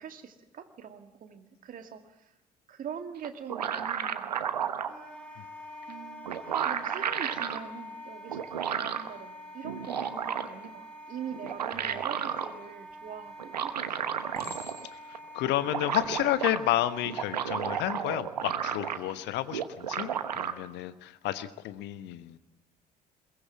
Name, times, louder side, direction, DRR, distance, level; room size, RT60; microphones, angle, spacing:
voice 1, 0.0-2.3 2.7-4.3 5.9-14.0, right 7 dB, 40° right, 7 dB, 2.2 m, -43 dB
sound 1, 3.2-4.9 5.9-6.0 6.3-7.6 8.3-9.1 9.6-10.7 11.3-12.5 13.4-14.9 15.1-15.2 15.4-16.6 17.0-19.2 19.5-20.5, right 8 dB, 80° right, 1.0 m, -32 dB
Wind instrument woodwind instrument, 4.9-17.9, equal, 5° left, 5.4 m, -46 dB
Chink clink, 12.9-13.4 14.3-15.1 15.9-16.2, left 3 dB, 70° left, 6.9 m, -47 dB
voice 2, 15.3-22.4, left 14 dB, 55° left, 13 dB, 1.2 m, -31 dB
22.0 x 18.0 x 7.5 m, 0.94 s
figure-of-eight pair, 55°, 21 cm